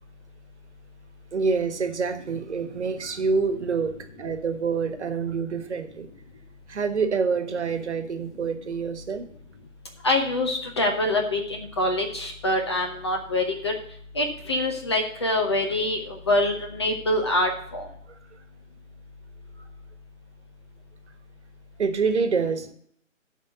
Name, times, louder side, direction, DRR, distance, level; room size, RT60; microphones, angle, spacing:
voice 1, 1.3-6.1 6.7-9.3 18.1-18.2 19.6-19.7 21.8-22.7, right 5 dB, 60° right, 8 dB, 1.4 m, -27 dB
voice 2, 10.0-13.7 14.2-17.9, left 1 dB, 20° left, 3 dB, 0.7 m, -25 dB
12.0 x 4.0 x 7.8 m, 0.65 s
figure-of-eight pair, 150°, 39 cm